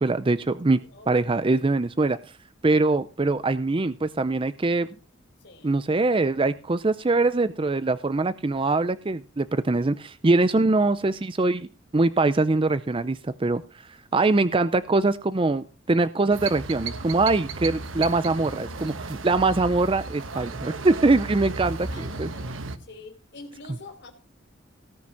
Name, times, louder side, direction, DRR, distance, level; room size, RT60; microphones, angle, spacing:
voice 1, 0.0-0.8 1.1-2.2 2.6-4.9 5.6-11.7 11.9-13.6 14.1-22.3 23.7-23.8, right 3 dB, 25° right, 13 dB, 0.5 m, -23 dB
voice 2, 5.4-5.8 21.9-22.5 22.9-24.1, left 3 dB, 60° left, 5 dB, 3.4 m, -45 dB
sound 1, 16.3-22.8, right 3 dB, 80° right, 1.2 m, -34 dB
18.0 x 6.1 x 5.4 m, 0.34 s
head